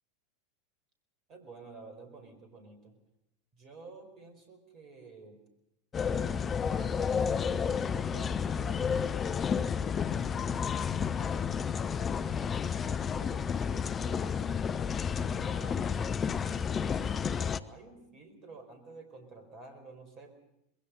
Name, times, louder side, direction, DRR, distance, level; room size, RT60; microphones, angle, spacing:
voice 1, 1.3-3.0 3.5-5.4 6.0-9.0 9.6-14.5 15.0-20.4, right 3 dB, 40° right, 7 dB, 4.9 m, -51 dB
sound 1, 5.9-17.6, left 7 dB, 25° left, 0.8 m, -31 dB
26.0 x 21.5 x 5.3 m, 0.82 s
figure-of-eight pair, 80°, 0 cm